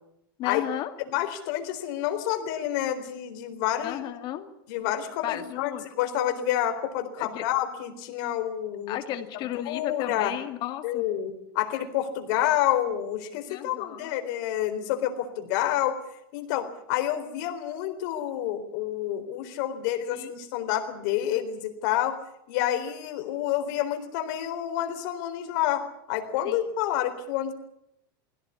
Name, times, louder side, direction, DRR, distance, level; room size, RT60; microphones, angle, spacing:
voice 1, 0.4-0.9 3.8-4.5 5.2-5.9 7.2-7.4 8.9-11.1 13.5-14.2 20.1-20.3 26.4-26.6, left 12 dB, 40° left, 7 dB, 2.3 m, -34 dB
voice 2, 1.1-4.0 4.7-5.7 6.0-9.0 9.7-10.3 10.8-16.0 16.3-22.2 22.5-25.8 26.1-27.5, left 12 dB, 60° left, 7 dB, 4.0 m, -28 dB
21.0 x 17.0 x 9.8 m, 0.80 s
supercardioid pair, 140°, 11 cm